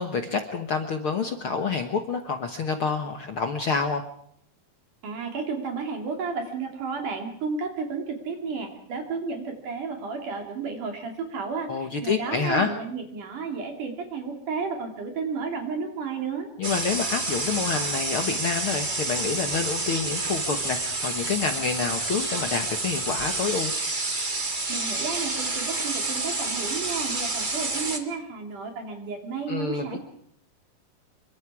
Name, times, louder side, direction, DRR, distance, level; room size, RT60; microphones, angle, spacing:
voice 1, 0.0-4.0 11.7-12.7 16.6-23.7 29.5-30.0, left 5 dB, 70° left, 6 dB, 1.3 m, -28 dB
voice 2, 5.0-16.5 24.7-30.0, right 5 dB, 60° right, 3 dB, 4.1 m, -32 dB
sound 1, 16.6-28.0, right 2 dB, 30° right, 0.8 m, -29 dB
27.5 x 23.5 x 4.9 m, 0.70 s
omnidirectional pair, 4.3 m